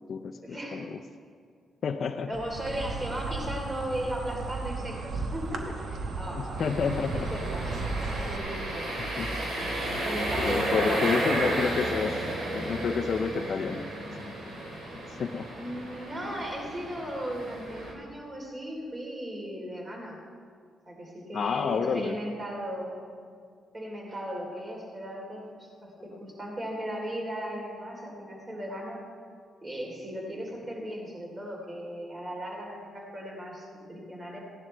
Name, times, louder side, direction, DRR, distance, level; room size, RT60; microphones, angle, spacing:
voice 1, 0.4-0.9 2.3-6.6 7.1-7.8 8.2-8.9 10.0-11.5 15.5-20.2 20.9-23.0 23.7-29.0 29.6-34.4, right 1 dB, 30° right, -2 dB, 3.5 m, -36 dB
voice 2, 1.8-2.3 6.4-7.3 9.2-9.3 10.4-12.2 12.5-13.9 15.1-15.5 21.3-22.1, left 6 dB, 60° left, 6 dB, 0.5 m, -29 dB
Insect, 2.3-8.4, right 3 dB, 65° right, 1.0 m, -35 dB
sound 1, 6.6-17.9, right 1 dB, 90° right, 3.0 m, -33 dB
17.0 x 10.5 x 3.3 m, 2.2 s
cardioid pair, 85°, 0 cm